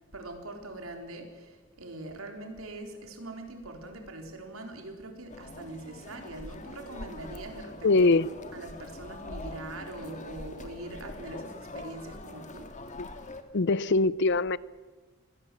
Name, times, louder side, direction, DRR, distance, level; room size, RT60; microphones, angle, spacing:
voice 1, 0.1-8.1 8.5-12.7, right 2 dB, 85° right, 3.9 m, -42 dB
sound 1, 5.3-13.4, left 2 dB, 35° left, 2.0 m, -43 dB
voice 2, 7.8-8.3 13.0-13.1 13.5-14.6, left 3 dB, 55° left, 0.6 m, -22 dB
24.5 x 18.5 x 7.6 m
head